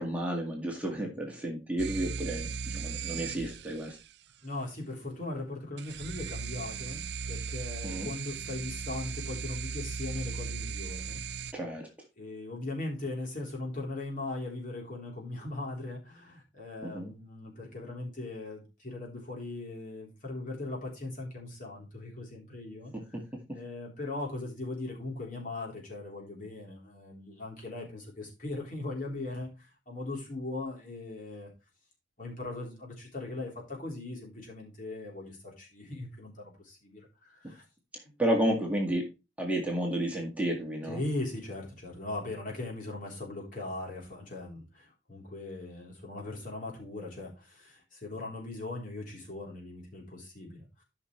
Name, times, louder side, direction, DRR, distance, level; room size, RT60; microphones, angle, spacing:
voice 1, 0.0-4.0 7.8-8.1 11.5-11.8 16.8-17.1 38.2-39.1 39.4-41.0, right 1 dB, 10° right, -1 dB, 1.9 m, -31 dB
sound 1, 1.8-4.1 5.8-11.5, right 5 dB, 65° right, 0.5 m, -37 dB
voice 2, 4.4-11.2 12.2-22.9 23.5-31.5 32.2-37.6 38.0-38.1 40.9-50.8, left 2 dB, 45° left, -2 dB, 3.6 m, -39 dB
13.0 x 5.9 x 3.2 m, 0.28 s
head